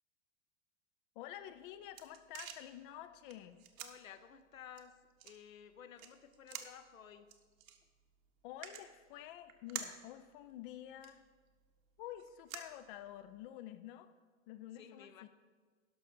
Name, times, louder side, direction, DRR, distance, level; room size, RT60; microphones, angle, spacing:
voice 1, 1.2-3.6 8.4-11.2 12.0-14.1 14.5-15.3, left 12 dB, 40° left, 11 dB, 0.5 m, -49 dB
sound 1, 1.4-13.5, right 9 dB, 40° right, 1.1 m, -52 dB
voice 2, 3.8-7.3 14.7-15.3, left 8 dB, 75° left, 10 dB, 0.8 m, -55 dB
11.5 x 6.1 x 5.6 m, 1.5 s
figure-of-eight pair, 90°, 41 cm